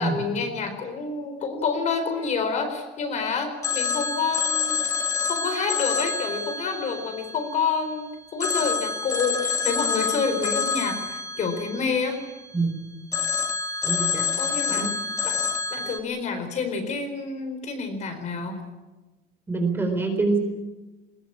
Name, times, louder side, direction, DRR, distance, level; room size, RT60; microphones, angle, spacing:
voice 1, 0.0-4.8 5.2-12.2 14.4-14.9 15.2-15.5 15.7-18.6, left 5 dB, 35° left, 7 dB, 4.4 m, -28 dB
Telephone, 3.6-7.9 8.4-12.6 13.1-16.0, left 5 dB, 15° left, 1.8 m, -28 dB
voice 2, 13.8-14.3 14.7-14.9 19.5-20.4, right 3 dB, 10° right, 4 dB, 4.1 m, -25 dB
22.5 x 21.5 x 8.8 m, 1.1 s
cardioid pair, 175°, 20 cm